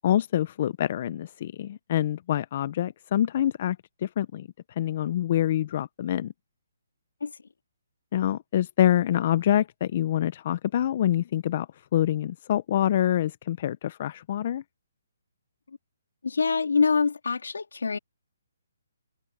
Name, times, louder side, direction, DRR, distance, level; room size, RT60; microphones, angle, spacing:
voice 1, 0.0-3.8 4.0-4.5 4.8-6.3 8.1-11.7 11.9-14.6, left 11 dB, 40° left, 0.7 m, -26 dB
voice 2, 16.2-18.0, left 5 dB, 90° left, 3.3 m, -25 dB
hypercardioid pair, 160°, 0 cm